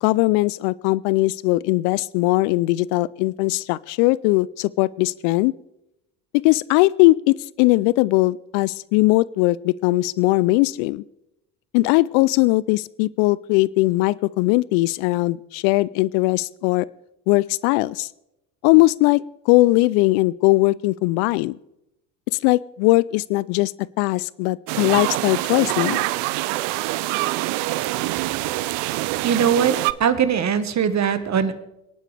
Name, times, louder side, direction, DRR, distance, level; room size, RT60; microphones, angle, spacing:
voice 1, 0.0-5.5 6.4-11.0 11.7-16.9 17.3-18.1 18.6-21.6 22.4-23.7 24.0-26.1, left 20 dB, 65° left, 22 dB, 0.5 m, -19 dB
sound 1, 24.7-29.9, right 18 dB, 65° right, 0.7 m, -25 dB
voice 2, 29.2-31.5, right 7 dB, 35° right, 12 dB, 1.4 m, -21 dB
24.5 x 11.0 x 3.4 m, 0.89 s
hypercardioid pair, 65°, 45 cm